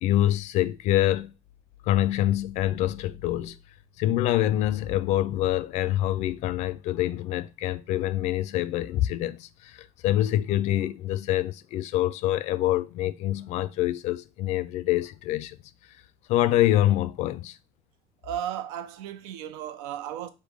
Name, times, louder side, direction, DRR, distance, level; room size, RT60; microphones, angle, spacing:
voice 1, 0.0-1.3 1.8-3.6 4.0-15.6 16.3-17.6, left 13 dB, 60° left, 0.4 m, -25 dB
voice 2, 18.2-20.3, right 10 dB, 85° right, 0.6 m, -34 dB
5.2 x 2.2 x 4.7 m
supercardioid pair, 115°, 13 cm